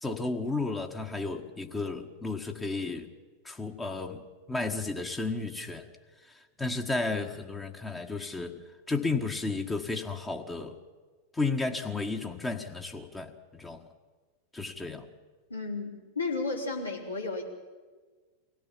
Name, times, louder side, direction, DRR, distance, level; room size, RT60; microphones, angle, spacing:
voice 1, 0.0-3.1 3.4-4.2 4.5-5.9 6.6-10.7 11.3-13.8 14.5-15.1, left 3 dB, 10° left, 3 dB, 1.6 m, -33 dB
voice 2, 15.5-17.4, left 3 dB, 80° left, -1 dB, 4.1 m, -33 dB
24.0 x 16.5 x 7.5 m, 1.4 s
figure-of-eight pair, 90°, 0 cm